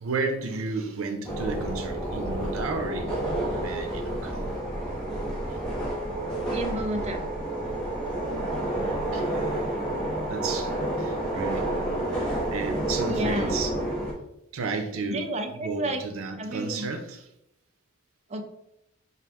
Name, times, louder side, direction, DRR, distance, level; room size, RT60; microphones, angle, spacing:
voice 1, 0.0-4.5 8.8-9.7 10.3-13.7 14.5-17.3, right 4 dB, 90° right, 6 dB, 0.6 m, -33 dB
sound 1, 1.2-14.1, right 1 dB, 5° left, 1.1 m, -29 dB
voice 2, 6.5-7.2 13.1-13.5 15.1-16.0 16.4-16.9 18.3-18.4, right 1 dB, 35° right, 5 dB, 0.5 m, -31 dB
4.8 x 2.5 x 3.5 m, 0.83 s
head